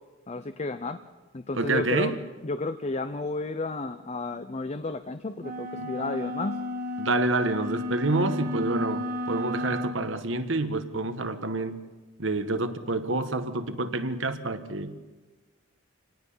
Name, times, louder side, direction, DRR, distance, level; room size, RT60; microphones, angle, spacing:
voice 1, 0.3-1.0 1.3-2.2 2.4-6.6, left 3 dB, 35° left, 10 dB, 0.6 m, -32 dB
voice 2, 1.5-2.2 5.8-5.9 7.0-11.8 12.2-15.0, right 2 dB, 65° right, 9 dB, 1.4 m, -28 dB
sound 1, 5.4-10.0, left 2 dB, 45° right, 1.8 m, -33 dB
27.0 x 18.5 x 5.6 m, 1.3 s
head